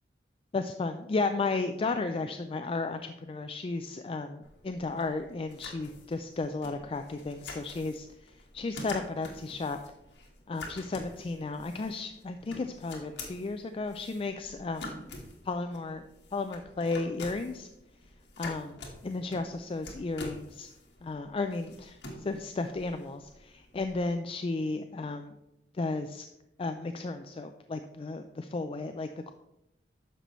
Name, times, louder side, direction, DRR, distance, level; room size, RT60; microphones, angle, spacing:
voice 1, 0.5-9.8 10.5-15.0 15.4-16.0 16.3-17.7 18.4-20.7 21.0-25.3 25.7-26.3 26.6-29.3, left 3 dB, 30° left, 8 dB, 0.4 m, -34 dB
sound 1, 4.4-24.0, left 2 dB, 80° left, 1.6 m, -47 dB
10.0 x 6.8 x 3.1 m, 0.88 s
head